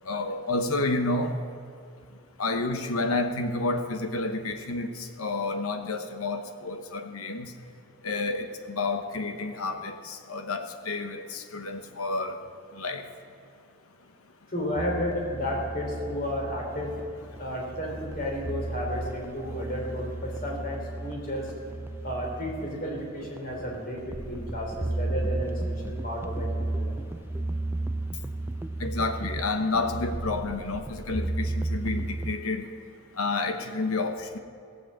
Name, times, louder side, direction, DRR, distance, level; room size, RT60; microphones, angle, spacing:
voice 1, 0.1-1.4 2.4-7.5 8.0-12.4 12.7-13.0 28.8-32.7 33.2-34.4, left 3 dB, 85° left, 7 dB, 1.1 m, -30 dB
voice 2, 14.5-16.9 17.4-21.5 22.0-27.0, equal, 40° left, 0 dB, 3.2 m, -32 dB
sound 1, 14.8-32.4, right 2 dB, 10° right, 0.3 m, -34 dB
16.5 x 7.8 x 7.5 m, 2.6 s
head